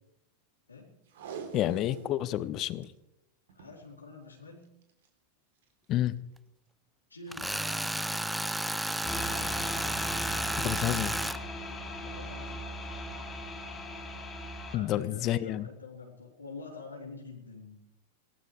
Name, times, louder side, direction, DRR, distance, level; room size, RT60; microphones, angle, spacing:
Packing tape duct tape, 1.1-2.2 2.6-2.7 2.8-2.9 3.5-3.8 4.8-5.1 5.6-5.7, right 6 dB, 60° right, 3.3 m, -44 dB
voice 1, 1.5-2.9 5.9-6.1 10.5-11.2 14.7-15.7, left 13 dB, 35° left, 0.9 m, -30 dB
voice 2, 3.5-4.7 7.1-8.3 12.0-12.6 14.7-17.8, left 3 dB, 80° left, 3.7 m, -47 dB
Tools, 7.3-11.4, right 1 dB, 5° right, 0.6 m, -32 dB
sound 1, 9.0-14.8, left 1 dB, 20° left, 2.7 m, -38 dB
23.0 x 17.5 x 3.4 m
figure-of-eight pair, 90°, 0 cm